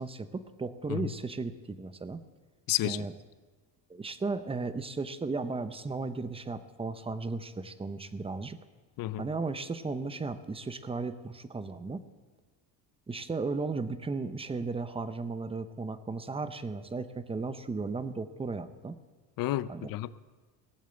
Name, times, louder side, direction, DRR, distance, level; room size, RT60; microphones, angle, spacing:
voice 1, 0.0-2.2 2.8-3.1 3.9-8.6 9.2-12.0 13.1-19.0 19.7-19.9, right 3 dB, 15° right, 11 dB, 0.8 m, -35 dB
voice 2, 2.7-3.1 9.0-9.2 19.4-20.2, left 14 dB, 60° left, 16 dB, 0.7 m, -31 dB
18.5 x 7.2 x 9.1 m, 1.4 s
cardioid pair, 115°, 39 cm